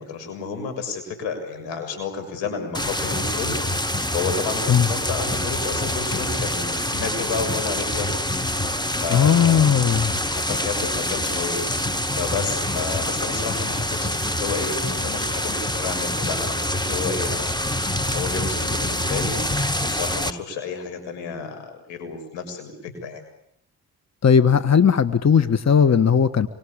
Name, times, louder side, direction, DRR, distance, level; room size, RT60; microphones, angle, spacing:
voice 1, 0.0-3.6 4.1-8.1 9.0-9.7 10.3-11.6 12.1-17.7 18.1-19.4 19.8-23.2, left 5 dB, 85° left, 6 dB, 6.9 m, -31 dB
sound 1, 2.7-20.3, left 1 dB, 10° left, 1.6 m, -26 dB
voice 2, 9.1-10.2 24.2-26.5, left 7 dB, 40° left, 13 dB, 1.5 m, -17 dB
26.5 x 24.5 x 8.8 m, 0.73 s
hypercardioid pair, 50°, 43 cm